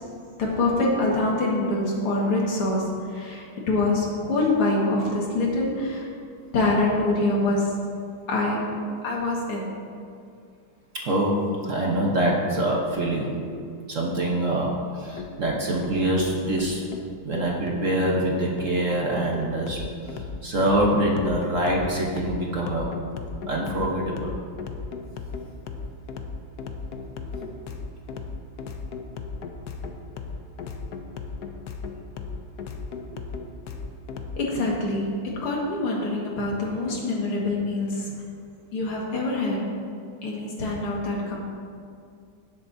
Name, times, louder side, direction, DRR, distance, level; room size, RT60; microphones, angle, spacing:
voice 1, 0.4-6.1 6.5-7.7 8.3-9.7 33.1-33.2 34.4-38.1 38.7-39.7 40.2-41.4, left 2 dB, 85° left, -3 dB, 2.7 m, -25 dB
voice 2, 10.9-13.4 13.9-16.8 17.2-23.0 23.5-24.3, right 1 dB, 45° right, -2 dB, 1.1 m, -25 dB
sound 1, 15.2-34.4, left 4 dB, 65° left, 1.0 m, -37 dB
17.0 x 7.9 x 2.7 m, 2.3 s
omnidirectional pair, 2.3 m